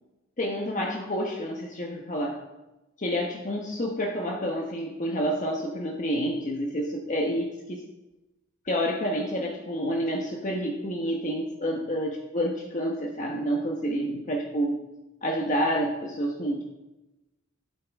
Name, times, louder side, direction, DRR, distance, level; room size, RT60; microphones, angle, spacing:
voice 1, 0.4-2.4 3.0-7.8 8.6-14.8 15.2-16.6, equal, 40° left, 0 dB, 1.1 m, -29 dB
12.5 x 9.2 x 3.6 m, 1.0 s
head